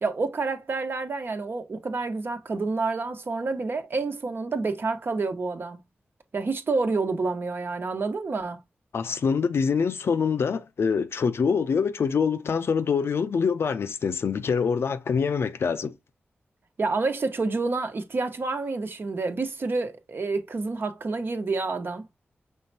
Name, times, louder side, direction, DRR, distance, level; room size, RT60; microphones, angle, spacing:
voice 1, 0.0-5.8 6.3-8.6 16.8-22.1, right 3 dB, 60° right, 1.0 m, -28 dB
voice 2, 8.9-16.0, left 6 dB, 80° left, 0.6 m, -25 dB
5.6 x 3.4 x 2.7 m
wide cardioid pair, 70°, 4 cm